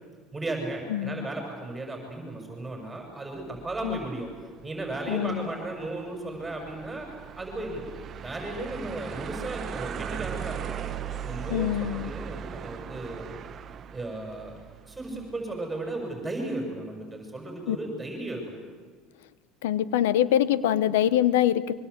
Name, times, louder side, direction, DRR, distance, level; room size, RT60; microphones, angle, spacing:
voice 1, 0.3-4.3 4.6-7.1 7.3-7.8 8.2-10.9 11.2-13.3 13.9-14.6 14.9-18.6, right 2 dB, 15° right, 2 dB, 6.5 m, -35 dB
voice 2, 0.9-1.3 3.8-4.0 5.1-5.5 11.5-12.1 17.7-17.8 19.6-21.7, left 11 dB, 90° left, 17 dB, 1.0 m, -24 dB
sound 1, 3.4-15.6, right 8 dB, 40° right, 1.1 m, -39 dB
25.5 x 23.5 x 8.3 m, 1.5 s
supercardioid pair, 95°, 0 cm